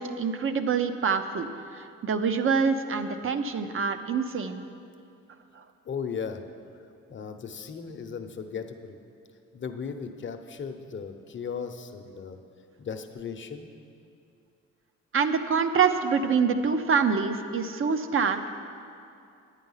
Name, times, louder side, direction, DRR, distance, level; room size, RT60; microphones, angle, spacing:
voice 1, 0.0-1.5 1.7-4.6 5.5-5.6 15.1-18.6, right 5 dB, 45° right, 8 dB, 0.7 m, -26 dB
voice 2, 5.8-6.4 7.1-9.0 9.5-12.4 12.8-13.7, left 6 dB, 40° left, 6 dB, 0.8 m, -36 dB
9.9 x 8.8 x 5.6 m, 2.5 s
cardioid pair, 90°, 30 cm